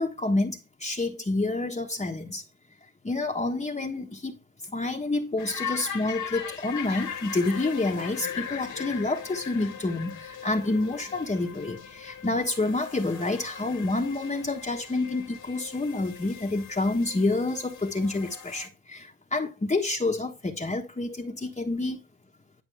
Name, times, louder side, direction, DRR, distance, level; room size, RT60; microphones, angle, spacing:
voice 1, 0.0-2.4 3.0-4.4 4.6-22.0, left 2 dB, 20° left, 1.4 m, -28 dB
sound 1, 5.4-18.7, left 7 dB, 70° left, 1.9 m, -39 dB
11.0 x 6.1 x 3.5 m
cardioid pair, 85°, 31 cm